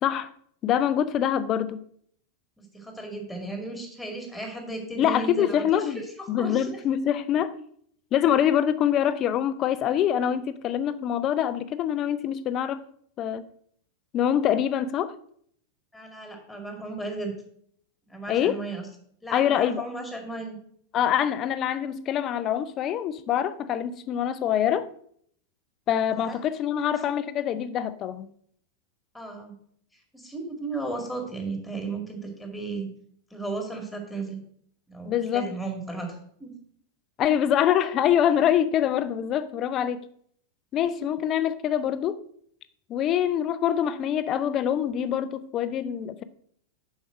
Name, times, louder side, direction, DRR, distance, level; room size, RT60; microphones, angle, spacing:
voice 1, 0.6-1.8 5.0-6.0 6.3-7.6 8.1-12.8 13.2-13.5 14.1-15.1 18.3-18.6 19.3-19.8 20.9-24.9 25.9-28.3 35.0-35.5 37.2-40.1 40.7-42.2 42.9-46.2, left 10 dB, 35° left, 0.6 m, -25 dB
voice 2, 2.6-6.8 15.9-17.3 18.1-18.8 19.2-20.6 26.3-26.4 26.9-27.0 29.1-29.5 30.1-32.9 33.3-34.4 34.9-36.5 41.0-41.1, right 2 dB, 5° left, 2.2 m, -35 dB
7.0 x 5.5 x 5.9 m
figure-of-eight pair, 90°, 0 cm